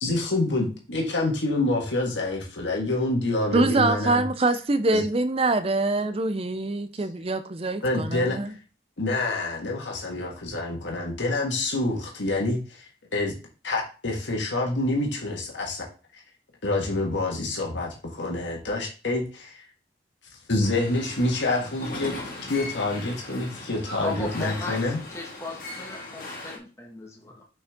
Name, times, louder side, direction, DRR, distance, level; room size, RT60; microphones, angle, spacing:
voice 1, 0.0-4.2 4.9-5.0 7.8-8.4 9.0-12.9 13.1-13.3 13.6-15.8 16.6-19.6 20.5-22.2 22.5-25.0, left 2 dB, 85° left, 1.7 m, -27 dB
voice 2, 3.5-8.5, right 2 dB, 30° right, 0.6 m, -24 dB
sound 1, 20.6-26.6, left 2 dB, 50° left, 1.8 m, -38 dB
voice 3, 24.0-24.8 25.1-27.4, left 2 dB, 15° left, 1.5 m, -36 dB
6.3 x 5.3 x 3.6 m
head